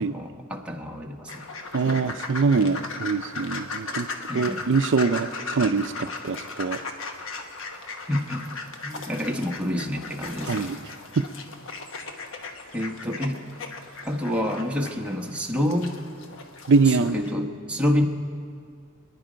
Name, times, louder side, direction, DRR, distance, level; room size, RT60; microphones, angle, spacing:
voice 1, 0.1-1.5 1.8-2.2 4.3-4.6 8.1-8.4 8.8-10.8 12.7-13.4 14.0-15.9 16.8-18.0, left 1 dB, 5° right, 0 dB, 1.2 m, -28 dB
sound 1, 1.3-17.3, left 3 dB, 65° left, 1.2 m, -37 dB
voice 2, 1.7-4.1 4.3-6.8 10.5-10.8 16.7-17.2, right 4 dB, 60° right, 9 dB, 0.5 m, -23 dB
26.5 x 10.5 x 5.1 m, 2.2 s
head